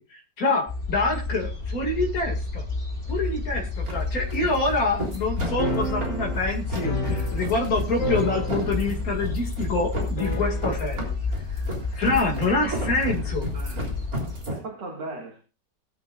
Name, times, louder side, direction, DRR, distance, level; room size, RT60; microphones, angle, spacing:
voice 1, 0.1-2.7 3.1-11.0 11.9-13.5, left 2 dB, 55° left, 0 dB, 2.7 m, -26 dB
sound 1, 0.7-14.4, left 4 dB, 35° left, 5.6 m, -31 dB
sound 2, 1.3-14.6, right 1 dB, 55° right, 4.0 m, -35 dB
sound 3, 5.6-7.7 8.0-9.0 9.2-9.3 10.2-11.0, equal, 75° left, 3.4 m, -31 dB
voice 2, 12.6-14.0 14.5-15.4, right 3 dB, 85° right, 0 dB, 2.9 m, -39 dB
20.5 x 8.4 x 2.4 m, 0.31 s
omnidirectional pair, 1.8 m